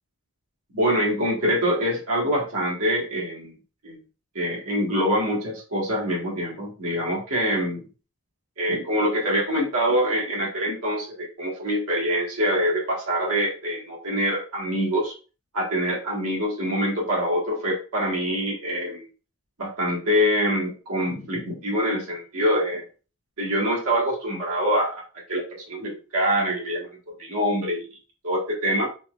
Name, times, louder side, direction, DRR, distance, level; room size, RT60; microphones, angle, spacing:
voice 1, 0.7-3.5 3.8-4.0 4.4-7.8 8.6-15.1 15.5-19.1 19.6-22.8 23.4-25.0 25.3-27.9 28.2-28.9, equal, 85° right, -3 dB, 1.8 m, -25 dB
4.2 x 3.1 x 2.5 m, 0.36 s
head